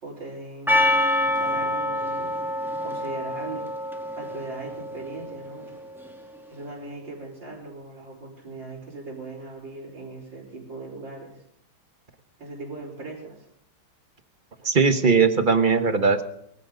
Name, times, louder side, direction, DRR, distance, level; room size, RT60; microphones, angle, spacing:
voice 1, 0.0-1.0 1.3-3.7 4.1-5.7 6.5-11.4 12.4-13.5, right 2 dB, 65° right, -7 dB, 4.8 m, -39 dB
Percussion, 0.7-5.6, left 1 dB, ahead, 1.9 m, -26 dB
voice 2, 14.6-16.2, right 5 dB, 35° right, 8 dB, 0.9 m, -19 dB
23.0 x 15.5 x 3.9 m, 0.69 s
omnidirectional pair, 2.2 m